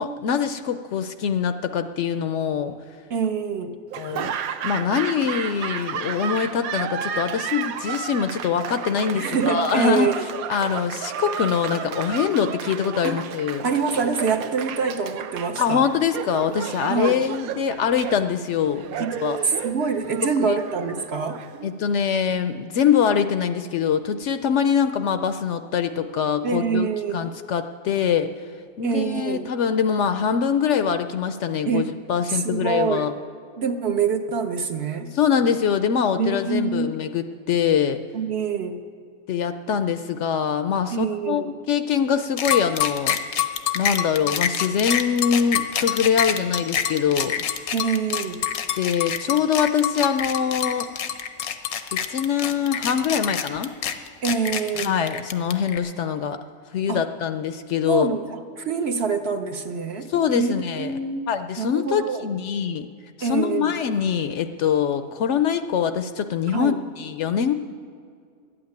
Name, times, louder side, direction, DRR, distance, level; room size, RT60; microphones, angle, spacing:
voice 1, 0.0-2.7 4.0-4.3 4.6-10.1 10.5-13.6 15.6-19.4 20.2-20.6 21.6-26.9 27.1-28.3 28.8-33.1 35.1-38.0 39.3-43.2 43.7-47.4 48.7-50.9 51.9-53.7 54.8-56.4 56.7-58.1 60.1-61.0 61.3-62.9 63.2-67.5, left 7 dB, 65° left, 10 dB, 0.8 m, -23 dB
voice 2, 3.1-3.8 9.1-10.3 13.0-13.2 13.6-15.8 16.9-17.2 19.0-19.2 19.4-21.4 26.4-27.3 28.8-29.5 31.7-31.9 32.3-33.1 33.6-35.1 36.2-37.0 38.1-38.8 40.9-41.5 47.7-48.4 54.2-54.9 56.9-57.0 57.9-61.3 61.6-62.3 63.2-63.7 66.5-66.8, right 5 dB, 55° right, 6 dB, 0.9 m, -25 dB
Laughter / Applause, 3.9-22.0, right 8 dB, 90° right, 1.1 m, -32 dB
sound 1, 42.4-55.8, left 9 dB, 85° left, 1.2 m, -26 dB
12.0 x 8.7 x 9.4 m, 2.3 s
omnidirectional pair, 1.5 m